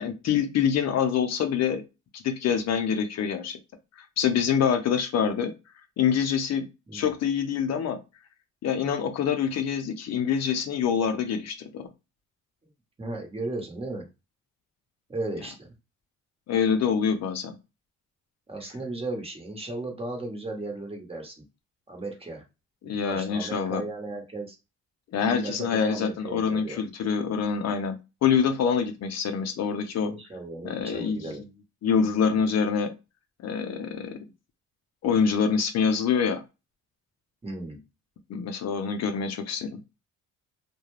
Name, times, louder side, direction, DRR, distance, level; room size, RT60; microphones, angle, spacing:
voice 1, 0.0-1.8 2.1-3.6 4.0-5.5 6.0-8.0 8.6-11.9 16.5-17.6 22.8-23.8 25.1-30.1 30.6-31.3 31.8-32.9 33.4-34.2 35.0-36.4 38.3-39.8, left 7 dB, 60° left, 7 dB, 0.5 m, -26 dB
voice 2, 13.0-14.1 15.1-15.7 18.5-21.4 21.9-22.4 23.0-24.6 25.2-26.8 30.0-31.4 37.4-37.8, right 2 dB, 20° right, 1 dB, 1.0 m, -35 dB
2.4 x 2.2 x 3.0 m, 0.27 s
cardioid pair, 90°, 30 cm